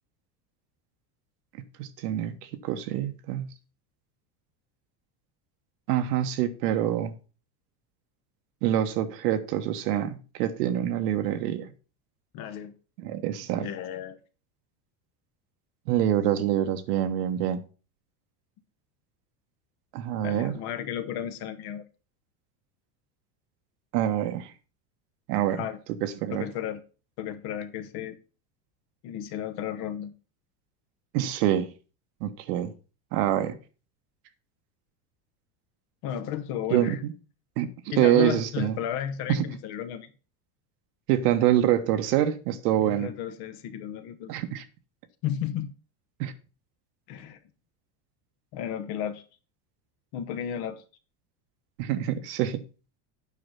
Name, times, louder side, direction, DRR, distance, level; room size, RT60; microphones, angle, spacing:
voice 1, 1.8-3.5 5.9-7.2 8.6-11.7 13.0-13.7 15.9-17.6 19.9-20.5 23.9-24.5 25.3-25.6 26.0-26.5 31.1-31.7 32.2-32.7 33.1-33.6 36.7-37.1 37.6-38.8 39.3-39.4 41.1-43.1 44.3-44.6 46.2-46.3 51.8-52.6, right 11 dB, 80° right, 1.2 m, -26 dB
voice 2, 12.3-12.7 13.6-14.2 20.2-21.8 25.5-25.8 26.3-26.8 27.2-28.2 29.0-30.1 36.0-37.0 37.9-40.1 42.8-44.4 45.2-45.7 47.1-47.4 48.5-49.2 50.1-50.8, left 9 dB, 55° left, 1.0 m, -33 dB
8.8 x 5.0 x 5.6 m
supercardioid pair, 135°, 46 cm